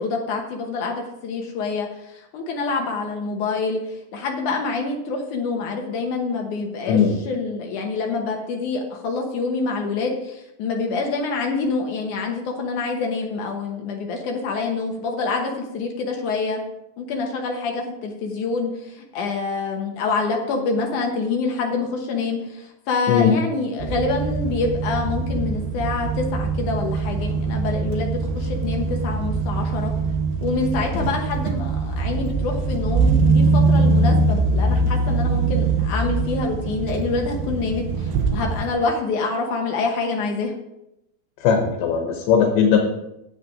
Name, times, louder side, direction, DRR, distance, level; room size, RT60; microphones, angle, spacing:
voice 1, 0.0-7.0 7.3-16.6 17.0-29.9 30.4-40.5, left 4 dB, 70° left, 2 dB, 1.9 m, -26 dB
voice 2, 6.9-7.2 23.1-23.3 31.0-31.1 41.4-42.8, left 7 dB, 85° left, 2 dB, 3.3 m, -18 dB
sound 1, 23.8-38.7, right 3 dB, 80° right, 3.2 m, -22 dB
9.8 x 8.2 x 4.9 m, 0.86 s
omnidirectional pair, 5.0 m